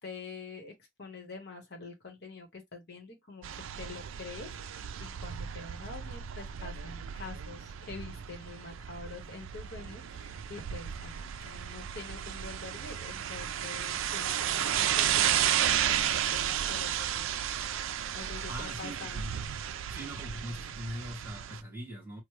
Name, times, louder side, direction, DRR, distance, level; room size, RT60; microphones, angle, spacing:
voice 1, 0.0-17.3 17.7-17.8 18.1-19.2, left 4 dB, 55° left, 1.1 m, -46 dB
sound 1, 3.4-21.6, right 10 dB, 70° right, 0.4 m, -33 dB
voice 2, 18.5-19.4 19.9-22.2, equal, 10° right, 1.3 m, -41 dB
3.1 x 2.1 x 3.1 m
head